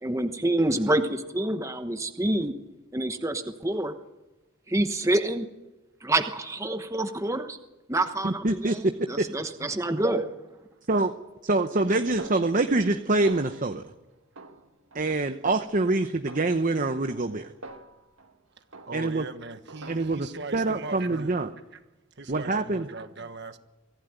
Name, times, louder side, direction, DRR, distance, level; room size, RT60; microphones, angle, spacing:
voice 1, 0.0-2.5 2.9-3.9 4.7-5.5 6.0-7.6 7.9-10.3, right 1 dB, 15° right, 1.1 m, -27 dB
voice 2, 8.2-8.7 9.2-9.3 10.9-11.1 11.4-13.9 14.9-17.5 18.9-19.2 19.9-20.3 20.5-21.5 22.3-22.8, right 2 dB, 40° right, 0.9 m, -25 dB
voice 3, 9.6-10.0 18.6-21.4 21.7-21.8 22.1-23.6, right 3 dB, 55° right, 1.4 m, -40 dB
Snare drum, 12.2-13.0 13.3-13.8 14.3-15.1 15.4-15.8 16.3-18.4 18.7-19.2 19.7-20.4, right 2 dB, 90° right, 1.6 m, -45 dB
24.0 x 15.5 x 9.2 m
head